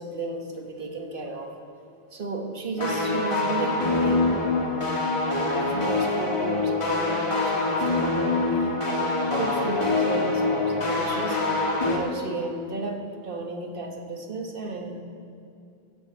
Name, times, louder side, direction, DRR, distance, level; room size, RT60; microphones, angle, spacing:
voice 1, 0.0-1.5 2.1-11.4 11.8-15.0, right 3 dB, 55° right, 2 dB, 1.7 m, -34 dB
sound 1, 2.8-12.0, left 3 dB, 30° left, 1.8 m, -25 dB
14.5 x 8.1 x 8.1 m, 2.5 s
omnidirectional pair, 1.1 m